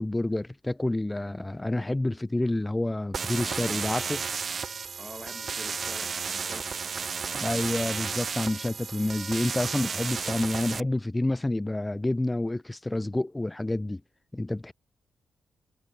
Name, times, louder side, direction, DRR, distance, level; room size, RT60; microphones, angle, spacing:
voice 1, 0.0-4.2 7.3-14.0 14.3-14.7, left 2 dB, 15° left, 0.8 m, -28 dB
sound 1, 3.1-10.8, right 5 dB, 55° right, 0.8 m, -33 dB
voice 2, 5.0-6.8, equal, ahead, 3.0 m, -45 dB
cardioid pair, 70°, 0 cm